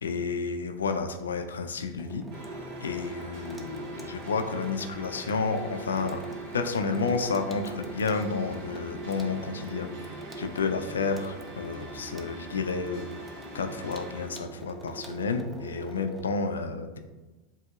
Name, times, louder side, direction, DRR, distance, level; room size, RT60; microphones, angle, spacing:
voice 1, 0.0-6.2 6.5-9.9 10.4-17.0, left 4 dB, 85° left, 7 dB, 0.4 m, -31 dB
Water tap faucet / Sink (filling or washing), 2.0-16.2, right 3 dB, 10° right, 0.6 m, -43 dB
sound 1, 2.3-14.3, equal, 50° right, 1.1 m, -44 dB
7.6 x 2.7 x 2.4 m, 1.2 s
hypercardioid pair, 90°, 0 cm